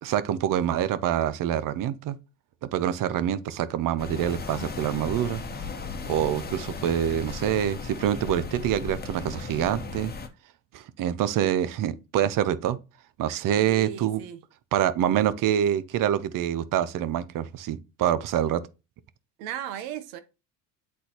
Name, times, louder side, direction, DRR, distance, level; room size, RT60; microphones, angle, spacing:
voice 1, 0.0-2.2 2.6-5.4 6.1-10.1 10.7-12.8 13.2-14.2 14.7-18.6, right 10 dB, 55° right, 0.8 m, -26 dB
sound 1, 4.0-10.3, left 4 dB, 25° left, 1.1 m, -36 dB
voice 2, 13.7-14.4 19.4-20.2, right 9 dB, 80° right, 1.1 m, -36 dB
8.5 x 3.9 x 2.9 m
supercardioid pair, 85°, 38 cm